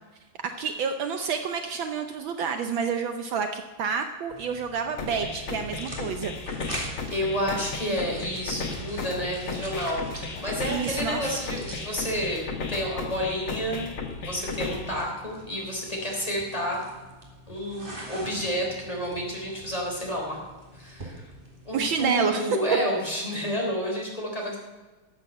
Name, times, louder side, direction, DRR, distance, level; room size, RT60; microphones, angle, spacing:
voice 1, 0.4-6.3 10.7-11.4 21.7-22.6, right 6 dB, 70° right, 7 dB, 1.4 m, -29 dB
sound 1, 4.3-22.1, right 1 dB, 25° right, 2.5 m, -44 dB
sound 2, 5.0-15.0, left 4 dB, 60° left, 2.1 m, -35 dB
voice 2, 7.1-13.9 14.2-16.8 17.5-20.4 20.7-21.3 21.7-24.6, equal, 15° left, -2 dB, 3.4 m, -30 dB
12.5 x 8.0 x 7.8 m, 1.3 s
omnidirectional pair, 2.4 m